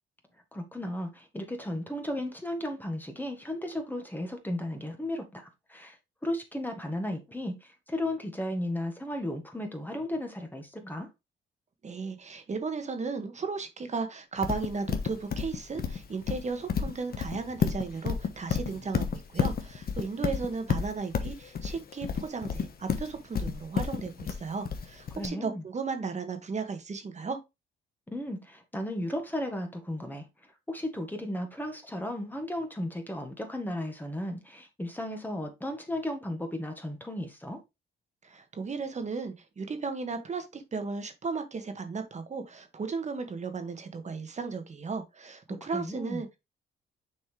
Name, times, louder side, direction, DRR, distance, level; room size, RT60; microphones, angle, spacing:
voice 1, 0.5-6.0 6.2-11.1 25.1-25.6 28.1-30.2 30.7-37.6 45.6-46.2, left 1 dB, 10° left, 1.5 m, -35 dB
voice 2, 11.8-27.4 38.2-46.4, right 4 dB, 35° right, 1.5 m, -35 dB
Livestock farm animals working animals, 14.4-25.3, left 6 dB, 50° left, 1.2 m, -30 dB
6.9 x 4.2 x 3.3 m
cardioid pair, 90°, 20 cm